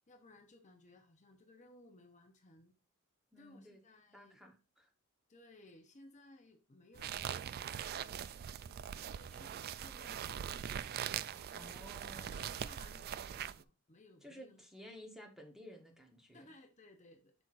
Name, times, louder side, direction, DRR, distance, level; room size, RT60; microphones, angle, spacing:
voice 1, 0.1-2.7 3.4-4.4 5.3-7.4 7.9-9.6 9.8-10.5 11.3-14.7 16.3-17.3, left 2 dB, 35° left, 4 dB, 0.8 m, -60 dB
voice 2, 3.3-3.8 4.1-4.9 11.5-12.4 14.2-16.5, equal, ahead, 2 dB, 1.2 m, -54 dB
sound 1, 7.0-13.6, right 9 dB, 45° right, 0.3 m, -42 dB
8.0 x 6.0 x 2.5 m, 0.30 s
head